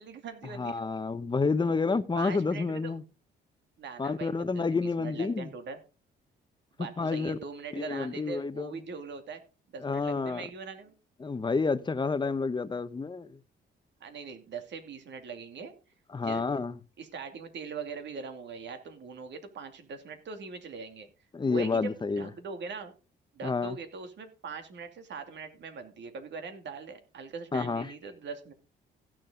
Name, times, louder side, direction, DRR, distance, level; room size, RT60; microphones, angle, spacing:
voice 1, 0.0-0.8 2.1-2.9 3.8-5.8 6.8-9.4 9.7-10.9 14.0-15.7 16.2-16.4 17.0-21.1 21.4-22.9 23.3-28.5, right 5 dB, 65° right, 2.6 m, -41 dB
voice 2, 0.5-3.0 4.0-5.5 6.8-7.4 7.7-8.8 9.8-10.4 11.2-13.4 16.1-16.7 21.3-22.3 23.4-23.8 27.5-27.9, left 4 dB, 25° left, 1.0 m, -29 dB
15.5 x 7.6 x 3.8 m
cardioid pair, 90°, 20 cm